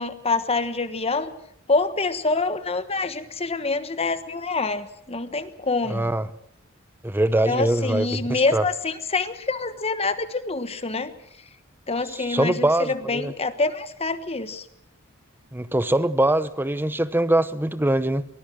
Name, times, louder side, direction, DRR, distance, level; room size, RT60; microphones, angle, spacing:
voice 1, 0.0-1.3 1.7-6.1 7.4-11.1 11.9-14.7, left 3 dB, 30° left, 1.3 m, -26 dB
voice 2, 5.9-6.3 7.0-8.6 12.1-13.3 15.5-18.3, right 1 dB, 10° right, 0.8 m, -23 dB
23.5 x 19.0 x 6.2 m
head